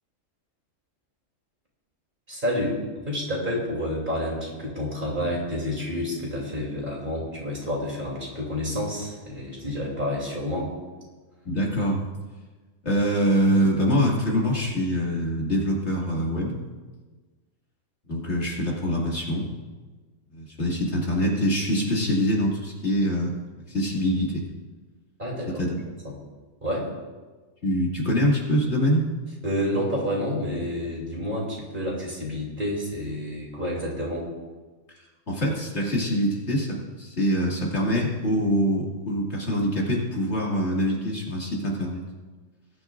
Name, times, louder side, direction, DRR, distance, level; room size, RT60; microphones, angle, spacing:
voice 1, 2.3-2.8 3.0-10.7 25.2-25.6 26.0-26.1 26.6-26.9 29.4-34.3, left 1 dB, 40° right, -3 dB, 3.3 m, -29 dB
voice 2, 11.4-12.0 12.8-16.5 18.1-19.5 20.3-23.3 23.7-24.4 25.6-25.8 27.6-29.1 35.3-42.0, equal, 55° left, -3 dB, 2.7 m, -24 dB
21.0 x 11.0 x 2.6 m, 1.3 s
omnidirectional pair, 1.3 m